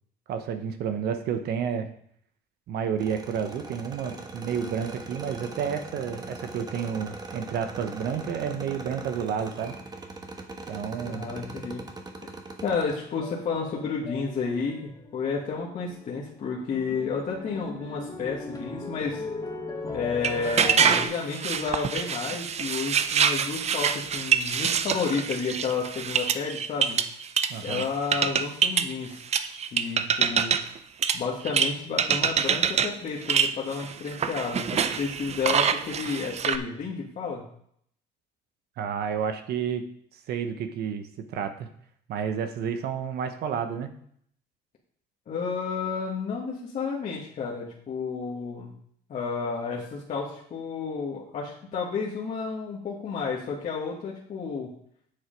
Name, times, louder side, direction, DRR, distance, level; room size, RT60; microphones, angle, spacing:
voice 1, 0.3-1.9 2.7-9.7 10.7-11.3 27.5-27.9 38.8-39.8 40.3-41.0 41.3-41.7 42.1-43.9, right 7 dB, 70° right, 8 dB, 1.0 m, -30 dB
sound 1, 3.0-13.0, right 2 dB, 25° right, 1.3 m, -40 dB
voice 2, 11.0-11.8 12.6-19.2 19.9-27.0 27.6-29.2 29.7-30.6 31.1-37.5 45.3-48.7 49.1-54.7, left 5 dB, 45° left, -4 dB, 1.8 m, -31 dB
sound 2, 12.9-15.2 15.5-16.1 16.4-21.1, left 3 dB, 20° left, 2.2 m, -37 dB
sound 3, 20.2-27.9 28.1-28.9 29.3-30.8 31.0-31.7 32.0-32.9 33.2-36.6, right 7 dB, 40° right, 0.6 m, -25 dB
8.0 x 6.7 x 5.2 m, 0.65 s
cardioid pair, 110°, 17 cm